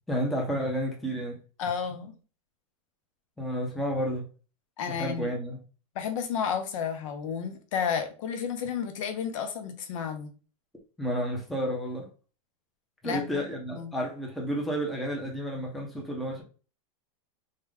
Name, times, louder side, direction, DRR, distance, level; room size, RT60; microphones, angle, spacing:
voice 1, 0.1-1.4 3.4-4.3 4.9-5.6 11.0-12.1 13.0-16.4, equal, ahead, 0.7 m, -31 dB
voice 2, 1.6-2.1 4.8-5.3 5.9-10.3 13.0-13.3 13.7-13.9, left 7 dB, 65° left, 0.9 m, -31 dB
3.7 x 2.2 x 3.6 m
supercardioid pair, 155°, 18 cm